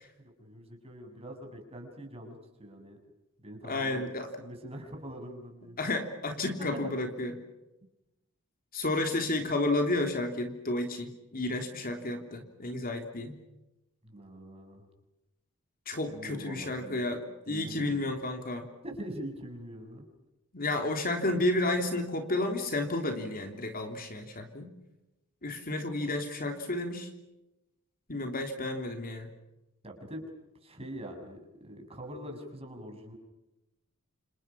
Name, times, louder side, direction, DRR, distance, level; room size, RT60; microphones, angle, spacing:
voice 1, 0.2-3.0 3.4-4.0 4.4-5.8 6.6-6.9 14.0-14.9 16.1-17.0 17.5-18.1 18.8-20.1 29.8-30.2 30.6-33.1, right 1 dB, 25° right, 3 dB, 7.0 m, -43 dB
voice 2, 3.6-4.3 5.8-7.3 8.7-13.4 15.9-18.7 20.5-24.7 25.4-27.1 28.1-29.3, left 2 dB, 40° left, 4 dB, 3.3 m, -31 dB
29.0 x 28.5 x 6.0 m, 0.98 s
head